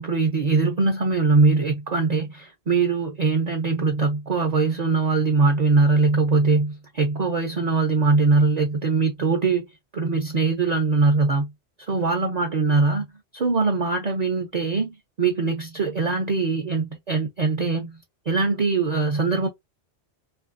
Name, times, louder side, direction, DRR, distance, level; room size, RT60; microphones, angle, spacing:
voice 1, 0.0-9.7 9.9-11.5 11.9-13.1 13.3-18.0 18.3-19.5, right 4 dB, 45° right, 0.6 m, -22 dB
2.6 x 2.5 x 2.5 m
omnidirectional pair, 1.1 m